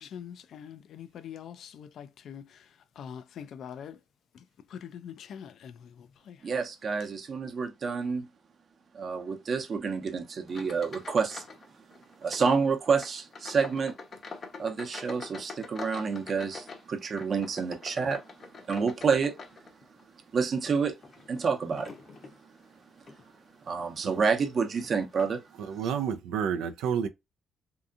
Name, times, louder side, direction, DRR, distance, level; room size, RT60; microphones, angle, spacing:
voice 1, 0.0-4.0 4.3-4.4 4.7-6.5, left 8 dB, 70° left, 0.3 m, -44 dB
voice 2, 6.4-8.3 8.9-11.4 12.2-14.0 14.6-18.2 18.7-19.4 20.3-20.9 21.3-21.9 23.6-25.4, right 5 dB, 55° right, 0.7 m, -28 dB
sound 1, 10.5-11.7 11.9-12.5 12.9-20.0 20.5-22.4 23.0-23.2 23.8-23.9 24.8-24.9 25.2-25.3, left 4 dB, 50° left, 0.7 m, -45 dB
voice 3, 25.6-27.1, right 7 dB, 90° right, 0.4 m, -30 dB
2.7 x 2.4 x 2.4 m
cardioid pair, 70°, 0 cm